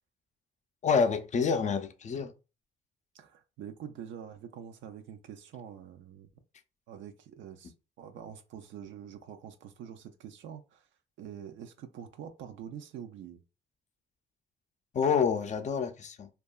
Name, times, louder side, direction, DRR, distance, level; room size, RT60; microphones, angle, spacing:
voice 1, 0.8-2.3 14.9-16.3, left 6 dB, 35° left, 0.4 m, -27 dB
voice 2, 3.1-6.3 6.9-10.9 11.2-13.4, right 8 dB, 75° right, 0.4 m, -45 dB
2.7 x 2.3 x 2.3 m
cardioid pair, 90°, 20 cm